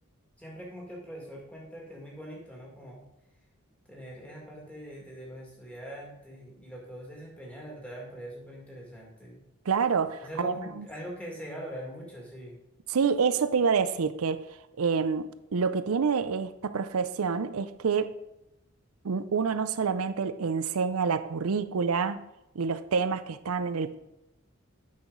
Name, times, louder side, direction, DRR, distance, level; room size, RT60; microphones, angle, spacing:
voice 1, 0.4-3.0 3.9-9.4 10.2-12.6, equal, 5° left, 1.9 m, -42 dB
voice 2, 9.7-10.9 12.9-14.5 14.8-18.1 19.0-22.3 22.6-23.9, right 5 dB, 80° right, 0.5 m, -27 dB
8.6 x 5.9 x 3.8 m
head